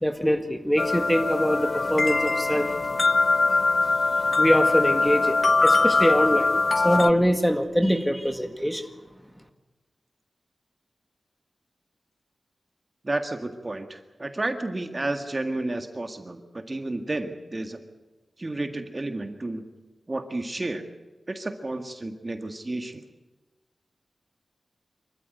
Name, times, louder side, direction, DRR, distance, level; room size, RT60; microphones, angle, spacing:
voice 1, 0.0-2.7 4.4-8.8, equal, 5° left, 7 dB, 1.8 m, -23 dB
sound 1, 0.8-7.1, left 3 dB, 45° left, 0.7 m, -22 dB
voice 2, 13.0-17.8 18.4-19.7 20.1-20.9 21.3-23.0, right 2 dB, 35° right, 7 dB, 1.8 m, -31 dB
24.5 x 14.5 x 9.5 m, 1.2 s
wide cardioid pair, 80°, 0 cm